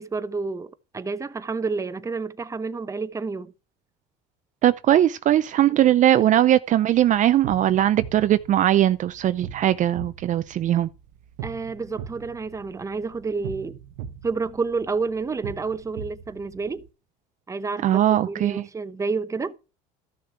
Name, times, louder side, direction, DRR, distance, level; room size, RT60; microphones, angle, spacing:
voice 1, 0.0-3.5 5.8-6.4 11.4-13.8 14.2-16.9 17.5-19.6, right 4 dB, 20° right, 0.8 m, -30 dB
voice 2, 4.6-10.9 17.8-18.7, right 12 dB, 45° right, 0.6 m, -20 dB
sound 1, 6.9-16.9, right 8 dB, 80° right, 1.1 m, -40 dB
13.5 x 6.6 x 4.6 m
supercardioid pair, 100°, 17 cm